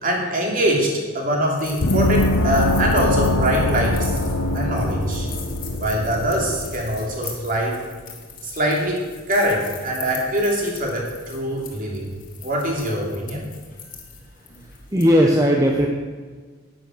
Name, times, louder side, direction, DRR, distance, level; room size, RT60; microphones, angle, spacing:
voice 1, 0.0-4.2 4.5-5.3 5.8-7.8 8.4-9.0 9.3-12.1 12.4-13.4, right 1 dB, 40° right, -1 dB, 2.9 m, -23 dB
sound 1, 1.5-15.1, left 6 dB, 40° left, 2.1 m, -41 dB
Gong, 1.8-7.1, left 1 dB, 85° left, 1.0 m, -22 dB
voice 2, 14.9-15.9, equal, 15° right, 0 dB, 0.9 m, -16 dB
11.0 x 9.3 x 6.3 m, 1.5 s
head